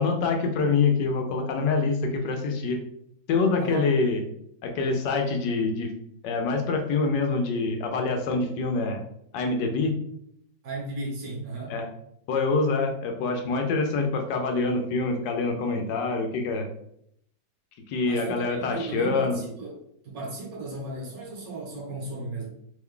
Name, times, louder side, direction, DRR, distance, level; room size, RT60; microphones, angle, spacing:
voice 1, 0.0-2.8 3.3-4.2 4.6-5.9 6.2-9.0 9.3-9.9 11.7-11.9 12.3-16.7 17.9-19.4, left 4 dB, 75° left, 3 dB, 1.2 m, -25 dB
voice 2, 3.6-4.0 10.6-11.8 18.0-19.8 20.0-22.5, right 2 dB, 60° right, -2 dB, 1.2 m, -35 dB
3.1 x 2.2 x 3.6 m, 0.71 s
omnidirectional pair, 1.9 m